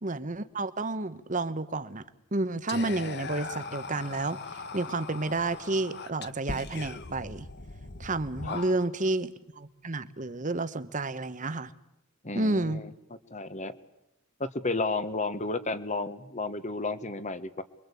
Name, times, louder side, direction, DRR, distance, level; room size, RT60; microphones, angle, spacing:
voice 1, 0.0-2.0 2.3-4.4 4.7-7.5 8.0-9.3 9.6-11.7 12.3-12.8, right 2 dB, 35° right, 13 dB, 1.2 m, -30 dB
Whispering, 2.7-9.1, left 4 dB, 50° left, 1.2 m, -40 dB
voice 2, 12.2-12.9 13.3-13.7 14.4-17.6, left 3 dB, 35° left, 12 dB, 1.5 m, -32 dB
28.0 x 23.5 x 8.5 m, 0.86 s
head